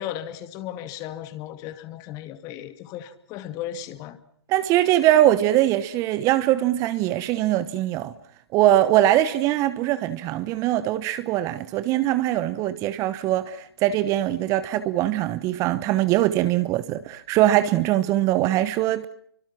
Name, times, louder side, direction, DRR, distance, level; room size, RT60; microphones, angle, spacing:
voice 1, 0.0-4.2, left 11 dB, 25° left, 2.2 m, -35 dB
voice 2, 4.5-8.1 8.5-19.1, right 13 dB, 25° right, 1.1 m, -22 dB
28.0 x 24.5 x 6.0 m
figure-of-eight pair, 135°, 13 cm